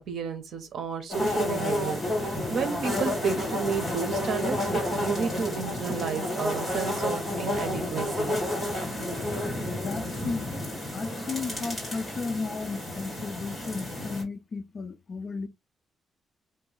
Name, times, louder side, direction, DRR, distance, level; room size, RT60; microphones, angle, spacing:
voice 1, 0.0-8.4, right 5 dB, 65° right, 0.9 m, -32 dB
sound 1, 1.1-14.2, left 1 dB, 10° left, 2.0 m, -31 dB
voice 2, 9.8-10.5 10.9-15.5, left 4 dB, 35° left, 0.5 m, -34 dB
3.0 x 2.7 x 3.8 m
wide cardioid pair, 165°, 0 cm